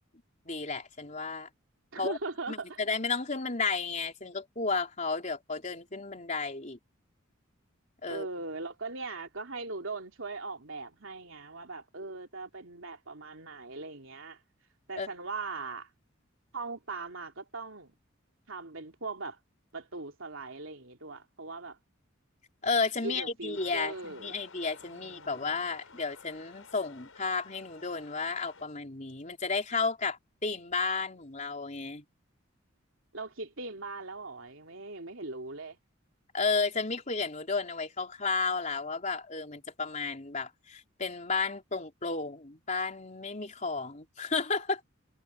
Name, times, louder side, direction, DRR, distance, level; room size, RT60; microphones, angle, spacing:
voice 1, 0.5-1.5 2.0-2.2 2.5-6.8 8.0-8.3 15.0-15.1 22.6-32.0 36.3-44.8, left 4 dB, 35° left, 3.9 m, -32 dB
voice 2, 1.9-2.8 8.1-14.4 14.9-15.9 16.5-18.0 18.5-19.4 19.7-21.8 23.0-24.4 24.9-25.7 33.1-35.8, right 3 dB, 75° right, 2.9 m, -40 dB
sound 1, 23.5-28.7, left 4 dB, 80° left, 5.7 m, -53 dB
head